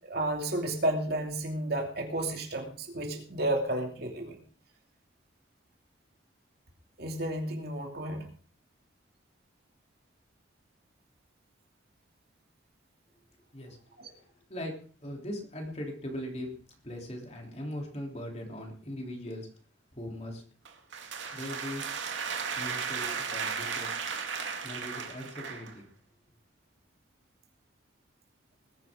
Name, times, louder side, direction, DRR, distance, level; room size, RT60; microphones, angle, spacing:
voice 1, 0.0-4.4 7.0-8.3 14.0-14.1, right 1 dB, 55° right, 2 dB, 2.8 m, -32 dB
voice 2, 15.0-16.5 16.8-19.5 19.9-20.4 21.3-21.8 22.6-23.9 24.6-25.9, left 1 dB, 35° left, 1 dB, 3.4 m, -39 dB
sound 1, 20.6-25.8, right 6 dB, 75° right, 2.3 m, -35 dB
20.5 x 10.0 x 3.8 m, 0.41 s
head